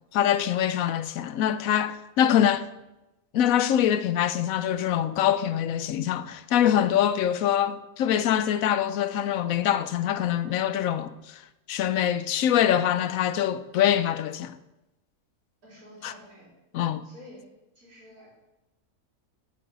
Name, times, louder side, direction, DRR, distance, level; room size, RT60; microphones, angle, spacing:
voice 1, 0.1-2.7 3.3-11.4 11.7-14.6 16.0-16.1 16.7-17.0, left 10 dB, 70° left, 1.0 m, -24 dB
voice 2, 15.6-16.5 17.0-17.4 17.8-18.3, left 1 dB, 85° right, 4.5 m, -49 dB
9.1 x 6.4 x 6.8 m
omnidirectional pair, 1.5 m